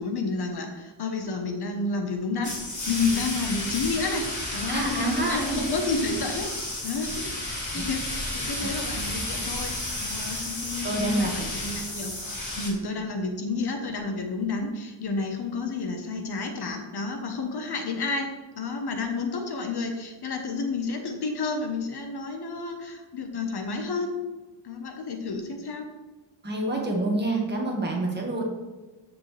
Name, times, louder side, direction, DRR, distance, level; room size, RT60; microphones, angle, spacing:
voice 1, 0.0-6.5 6.8-9.7 10.0-12.1 12.6-24.1 24.6-25.9 28.3-28.4, left 3 dB, 55° left, 4 dB, 1.3 m, -30 dB
sound 1, 2.4-12.7, left 1 dB, 40° left, 2.9 m, -32 dB
voice 2, 4.7-5.7 7.7-7.9 8.6-8.7 10.8-11.4 26.4-28.4, right 2 dB, 20° right, -1 dB, 1.8 m, -27 dB
14.0 x 6.8 x 3.4 m, 1.2 s
wide cardioid pair, 180°, 46 cm